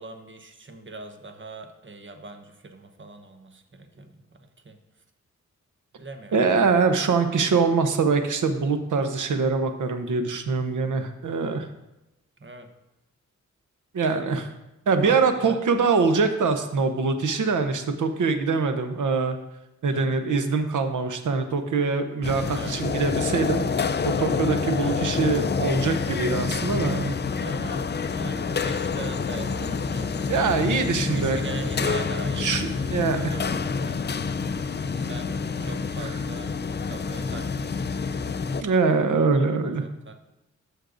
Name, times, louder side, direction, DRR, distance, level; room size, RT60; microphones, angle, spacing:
voice 1, 0.0-4.8 6.0-6.6 6.9-7.0 12.4-12.7 15.0-15.6 19.9-20.1 22.5-22.8 24.8-25.5 27.4-34.2 34.9-36.5 36.9-37.9 39.6-40.2, right 3 dB, 40° right, 6 dB, 1.1 m, -41 dB
voice 2, 6.3-11.7 13.9-14.5 14.9-19.4 19.8-23.6 24.0-27.2 30.3-31.9 32.4-33.3 36.0-36.1 38.6-39.8, right 4 dB, 90° right, 7 dB, 0.9 m, -23 dB
sound 1, 22.2-38.6, left 5 dB, 35° left, 0.5 m, -27 dB
13.0 x 6.4 x 2.6 m, 0.95 s
cardioid pair, 65°, 30 cm